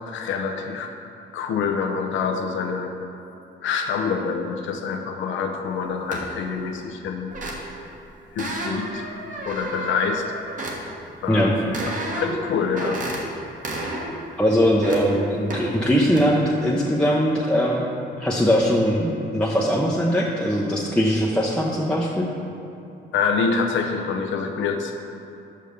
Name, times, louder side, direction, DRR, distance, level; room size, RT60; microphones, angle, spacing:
voice 1, 0.1-0.9 1.3-2.9 3.6-7.3 8.3-9.0 9.5-10.2 11.2-13.0 23.1-24.9, left 5 dB, 75° left, 4 dB, 0.7 m, -26 dB
sound 1, 6.1-6.4 7.3-7.9 8.4-10.8 11.7-12.4 12.7-13.2 13.6-14.1 14.5-15.0 15.5-15.7 16.1-16.3, right 2 dB, 40° right, 1.4 m, -31 dB
voice 2, 14.4-17.9 18.2-22.3, equal, 5° left, -4 dB, 0.7 m, -21 dB
5.5 x 5.2 x 6.5 m, 2.9 s
cardioid pair, 90°, 20 cm